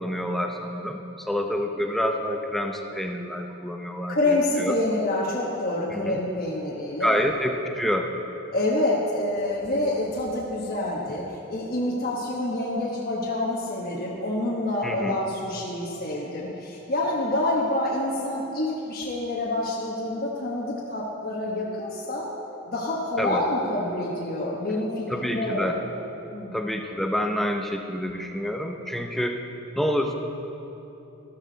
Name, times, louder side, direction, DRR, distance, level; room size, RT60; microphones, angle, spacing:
voice 1, 0.0-4.7 5.9-6.2 7.0-8.1 14.8-15.2 23.2-23.5 25.1-25.8 26.5-29.4 29.8-30.1, equal, ahead, 3 dB, 0.7 m, -28 dB
voice 2, 4.1-7.2 8.5-22.2 22.7-25.7 26.3-26.5, left 1 dB, 45° left, -4 dB, 1.2 m, -27 dB
13.5 x 13.0 x 4.0 m, 3.0 s
head